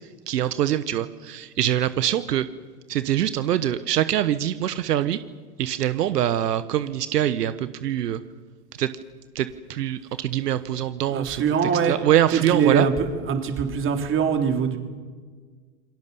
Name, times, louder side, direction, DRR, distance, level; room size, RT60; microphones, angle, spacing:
voice 1, 0.3-2.4 2.9-5.2 5.6-8.2 8.8-8.9 9.3-11.4 11.9-12.8, right 11 dB, 80° right, 13 dB, 1.3 m, -24 dB
voice 2, 11.1-12.0 12.3-14.8, right 6 dB, 25° right, 5 dB, 3.4 m, -23 dB
28.5 x 21.0 x 7.0 m, 1.5 s
hypercardioid pair, 125°, 47 cm